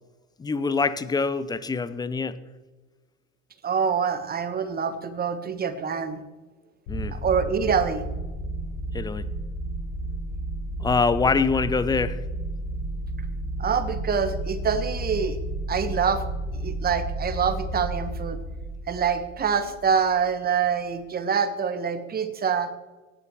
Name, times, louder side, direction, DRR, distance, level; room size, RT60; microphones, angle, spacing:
voice 1, 0.4-2.4 6.9-7.1 8.9-9.3 10.8-12.2, left 4 dB, 10° left, 15 dB, 0.5 m, -24 dB
voice 2, 3.6-6.2 7.1-8.1 13.6-15.4 15.7-16.2 16.5-18.4 18.9-22.7, right 6 dB, 25° right, 10 dB, 1.3 m, -25 dB
sound 1, 6.9-20.2, right 1 dB, 55° left, 4.0 m, -32 dB
17.5 x 10.5 x 3.1 m, 1.2 s
figure-of-eight pair, 75°, 39 cm